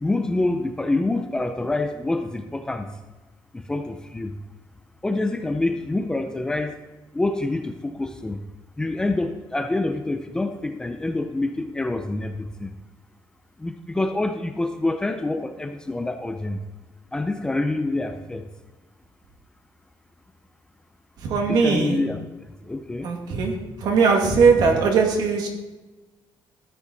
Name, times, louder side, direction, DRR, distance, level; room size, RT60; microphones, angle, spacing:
voice 1, 0.0-2.9 3.5-4.4 5.0-6.7 7.1-8.4 8.8-12.7 13.6-16.6 17.1-18.5 21.5-22.2 22.6-23.1, left 2 dB, 10° left, 7 dB, 0.5 m, -26 dB
voice 2, 21.2-22.0 23.0-23.5 23.8-25.5, right 5 dB, 60° right, 2 dB, 2.3 m, -19 dB
13.5 x 9.1 x 4.0 m, 1.2 s
cardioid pair, 175°, 8 cm